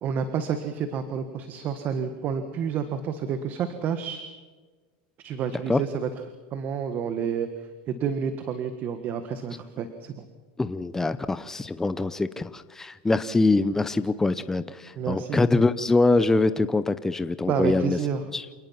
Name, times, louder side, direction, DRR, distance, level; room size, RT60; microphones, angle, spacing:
voice 1, 0.0-4.2 5.2-6.1 6.5-7.5 7.9-10.3 14.9-15.5 17.5-18.2, right 7 dB, 40° right, 8 dB, 1.7 m, -29 dB
voice 2, 10.6-18.0 18.3-18.4, left 3 dB, 10° left, 12 dB, 0.8 m, -24 dB
28.5 x 19.0 x 5.9 m, 1.4 s
supercardioid pair, 125°, 5 cm